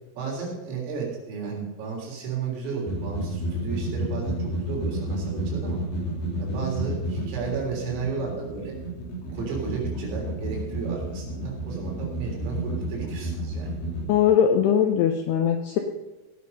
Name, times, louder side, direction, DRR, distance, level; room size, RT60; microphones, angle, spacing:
voice 1, 0.1-5.8 6.4-8.7 9.3-13.7, right 5 dB, 80° right, -2 dB, 6.1 m, -33 dB
sound 1, 2.9-14.1, right 1 dB, 55° left, 4.9 m, -31 dB
voice 2, 14.1-15.8, left 8 dB, 85° left, 5 dB, 2.3 m, -20 dB
17.5 x 8.4 x 5.4 m, 1.1 s
omnidirectional pair, 5.8 m